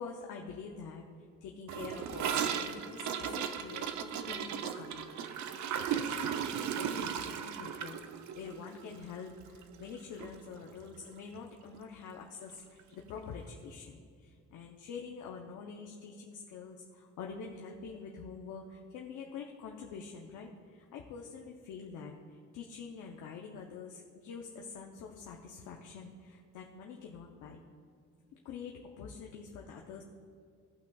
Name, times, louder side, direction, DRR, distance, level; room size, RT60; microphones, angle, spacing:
voice 1, 0.0-27.6 28.3-30.0, left 5 dB, 80° left, 0 dB, 0.8 m, -46 dB
Gurgling / Toilet flush, 1.7-9.9 10.2-10.3 10.6-11.1 11.3-11.4 11.7-11.8 12.8-12.9, right 8 dB, 70° right, 0.6 m, -36 dB
17.5 x 5.8 x 2.3 m, 2.3 s
cardioid pair, 90°, 30 cm